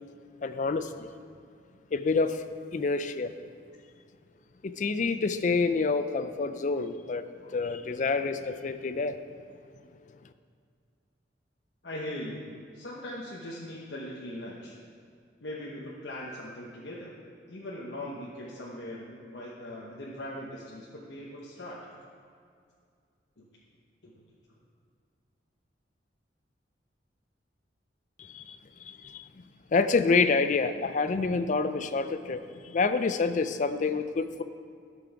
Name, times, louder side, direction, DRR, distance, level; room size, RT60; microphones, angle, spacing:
voice 1, 0.4-1.1 1.9-2.4 2.7-3.3 4.6-9.2 28.2-28.6 28.9-29.3 29.7-34.4, left 4 dB, 45° left, 11 dB, 0.4 m, -27 dB
voice 2, 11.8-14.7 15.4-17.1 17.5-21.8 23.4-23.5 24.0-24.1, left 1 dB, 80° left, -4 dB, 1.0 m, -40 dB
12.0 x 6.1 x 4.6 m, 2.3 s
head